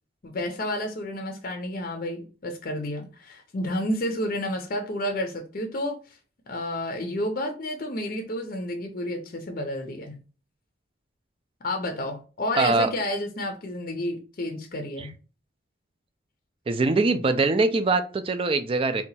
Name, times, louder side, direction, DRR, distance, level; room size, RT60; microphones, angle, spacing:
voice 1, 0.2-6.0 6.5-10.2 11.6-15.1, left 1 dB, 50° left, 0.5 m, -30 dB
voice 2, 12.6-12.9 15.0-15.1 16.7-19.0, right 3 dB, 30° right, 0.3 m, -23 dB
2.8 x 2.2 x 4.0 m
head